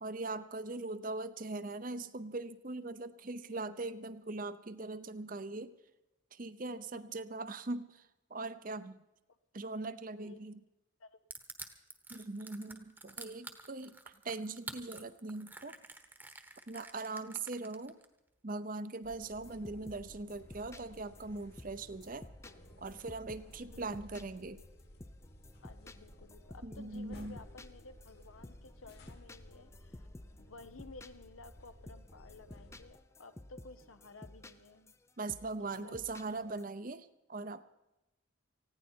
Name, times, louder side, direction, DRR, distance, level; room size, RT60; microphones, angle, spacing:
voice 1, 0.0-5.7 6.3-9.0 9.5-10.6 12.1-15.8 16.7-18.0 18.4-22.3 22.8-24.6 26.6-27.4 35.2-37.6, right 3 dB, 40° right, 13 dB, 0.7 m, -41 dB
Crushing, 11.3-18.1, right 3 dB, 10° right, 1.1 m, -48 dB
voice 2, 17.1-17.4 23.5-23.9 25.6-30.1 30.4-34.9 35.8-36.0, left 3 dB, 80° left, 11 dB, 1.0 m, -55 dB
sound 1, 19.0-32.9, equal, 50° left, 1.7 m, -56 dB
sound 2, 19.1-36.6, left 1 dB, 15° left, 0.5 m, -54 dB
19.5 x 15.5 x 4.5 m, 0.94 s
head